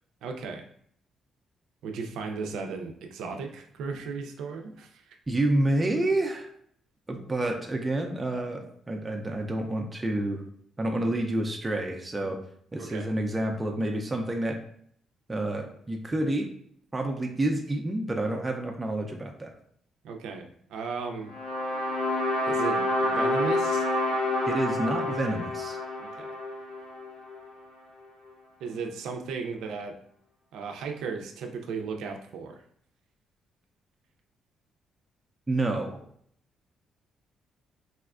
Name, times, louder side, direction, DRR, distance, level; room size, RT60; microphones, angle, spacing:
voice 1, 0.2-0.6 1.8-5.2 12.8-13.1 20.0-21.3 22.5-23.9 26.0-26.4 28.6-30.0 30.5-32.6, right 5 dB, 85° right, 4 dB, 0.4 m, -36 dB
voice 2, 5.3-6.5 7.1-10.4 10.8-12.4 12.7-14.6 15.3-16.5 16.9-19.5 24.5-25.8 35.5-36.0, right 1 dB, 20° right, 2 dB, 0.4 m, -28 dB
sound 1, 21.3-27.5, left 1 dB, 85° left, 0.7 m, -28 dB
4.1 x 2.2 x 2.4 m, 0.65 s
cardioid pair, 90°, 0 cm